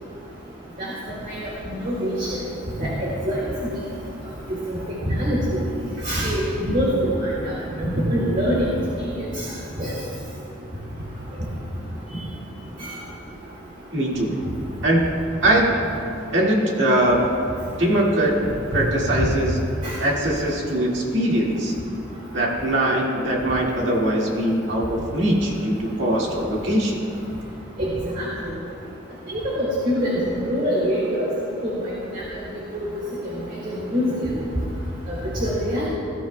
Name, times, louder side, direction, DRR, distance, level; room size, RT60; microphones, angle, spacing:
voice 1, 1.7-2.3 2.8-3.1 5.0-5.4 6.0-7.1 7.8-8.6 9.8-9.9 19.1-19.3 19.8-19.9 27.8-28.2 29.3-31.3 31.6-31.7 32.7-32.8 33.9-34.3 35.4-35.9, equal, 40° right, -6 dB, 2.0 m, -23 dB
voice 2, 13.9-14.3 14.8-15.7 16.3-17.2 17.8-18.3 18.7-19.6 20.0-21.7 22.3-27.0, right 1 dB, 60° right, -3 dB, 2.0 m, -21 dB
19.0 x 13.5 x 2.2 m, 2.7 s
head